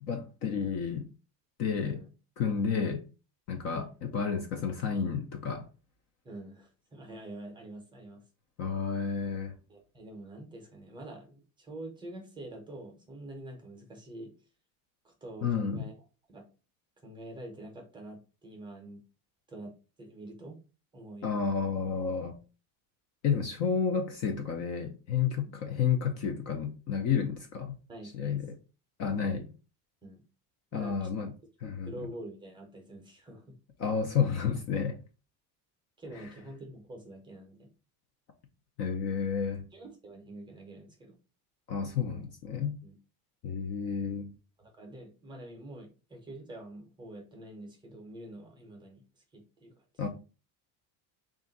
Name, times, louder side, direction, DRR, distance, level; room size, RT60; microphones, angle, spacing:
voice 1, 0.1-1.1 1.6-2.0 2.4-3.0 3.5-5.7 8.6-9.5 15.4-15.9 21.2-22.4 23.2-27.8 28.1-28.6 29.0-29.5 30.7-31.3 31.6-31.9 33.8-35.0 36.2-36.3 38.8-39.6 41.7-42.8 43.4-44.3 50.0-50.1, left 6 dB, 40° left, 0.4 m, -31 dB
voice 2, 6.2-8.2 9.7-14.3 15.0-15.9 16.3-16.4 17.0-19.0 19.5-20.6 20.9-21.3 21.6-21.7 25.4-25.6 27.9-28.4 30.0-30.2 30.7-31.1 31.8-33.5 36.0-37.7 39.7-41.2 42.8-42.9 44.6-49.7, right 1 dB, 10° right, 0.6 m, -46 dB
3.5 x 2.5 x 3.9 m
cardioid pair, 170°, 42 cm